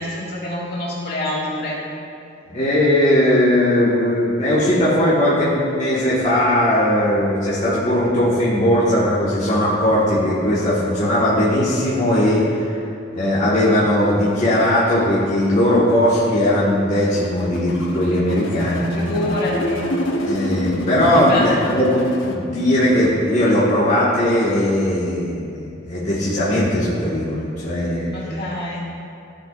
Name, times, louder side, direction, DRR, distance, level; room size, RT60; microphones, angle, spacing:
voice 1, 0.0-1.8 18.9-19.9 21.1-21.5 28.1-28.8, left 1 dB, 55° left, -5 dB, 2.0 m, -26 dB
voice 2, 2.5-12.8 13.1-19.2 20.2-28.1, left 1 dB, 40° left, -9 dB, 1.6 m, -18 dB
sound 1, 17.1-22.3, equal, 90° left, 1.0 m, -27 dB
15.0 x 7.4 x 2.5 m, 2.6 s
head